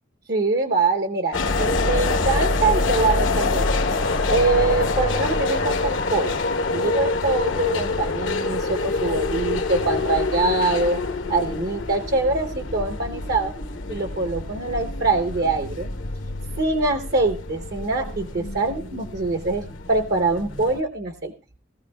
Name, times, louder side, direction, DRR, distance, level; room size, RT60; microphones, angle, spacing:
voice 1, 0.3-3.7 4.3-6.4 6.7-11.0 11.3-13.5 13.9-15.9 16.6-21.3, right 3 dB, 55° right, 6 dB, 0.8 m, -24 dB
sound 1, 1.3-20.8, left 3 dB, 80° left, 1.0 m, -26 dB
17.5 x 14.0 x 2.3 m, 0.35 s
head